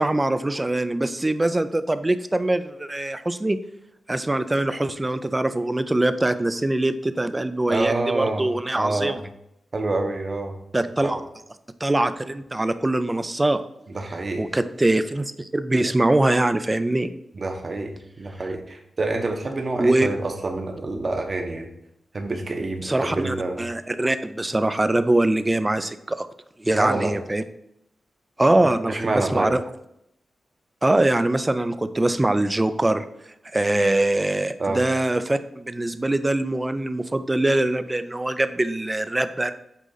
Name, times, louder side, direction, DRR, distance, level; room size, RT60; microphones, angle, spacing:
voice 1, 0.0-3.6 4.1-9.2 10.7-11.2 11.8-13.6 14.4-17.1 19.8-20.1 22.8-26.3 26.6-27.4 28.4-29.6 30.8-33.1 33.5-39.5, right 1 dB, 15° right, 11 dB, 0.3 m, -23 dB
voice 2, 7.7-8.5 8.7-9.2 9.7-10.6 11.0-11.2 13.9-14.4 17.3-17.9 18.2-21.7 22.1-23.6 26.7-27.1 28.9-29.5 34.6-34.8, right 2 dB, 30° right, 3 dB, 0.9 m, -27 dB
8.2 x 3.8 x 3.9 m, 0.79 s
wide cardioid pair, 180°, 0 cm